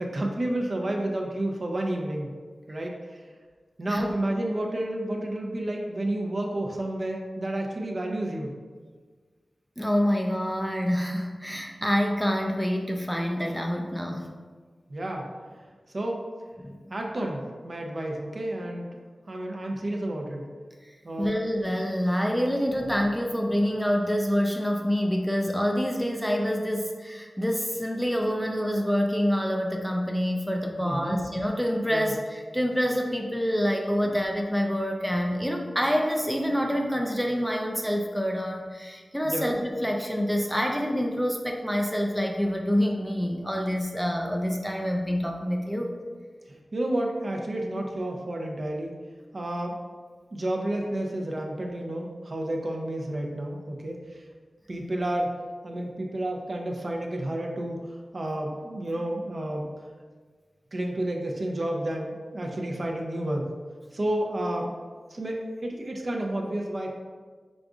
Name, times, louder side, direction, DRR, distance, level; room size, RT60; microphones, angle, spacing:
voice 1, 0.0-2.3 2.7-3.2 3.8-8.5 14.9-15.2 15.9-16.2 16.9-18.9 19.3-20.5 21.0-21.4 30.8-31.2 31.9-32.1 39.2-39.5 46.5-48.9 49.3-49.8 50.3-54.3 54.7-55.3 55.6-59.7 60.7-63.5 63.9-64.7 65.1-67.0, right 1 dB, 50° right, 0 dB, 0.6 m, -30 dB
voice 2, 9.8-14.3 16.6-16.8 21.2-45.9, equal, ahead, 1 dB, 0.4 m, -27 dB
5.0 x 3.7 x 2.4 m, 1.5 s
wide cardioid pair, 85°, 0 cm